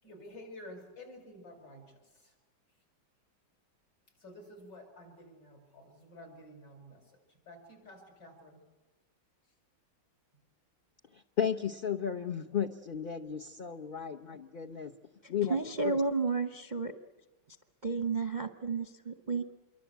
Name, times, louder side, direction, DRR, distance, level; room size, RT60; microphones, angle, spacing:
voice 1, 0.0-2.3 4.2-8.6, left 1 dB, 65° left, 4 dB, 7.4 m, -51 dB
voice 2, 11.4-14.9 15.3-15.6 15.8-16.0, left 8 dB, 40° left, 4 dB, 0.8 m, -34 dB
voice 3, 15.5-16.9 17.8-19.4, right 4 dB, 35° right, 8 dB, 0.8 m, -31 dB
27.5 x 23.5 x 8.2 m, 1.2 s
omnidirectional pair, 2.0 m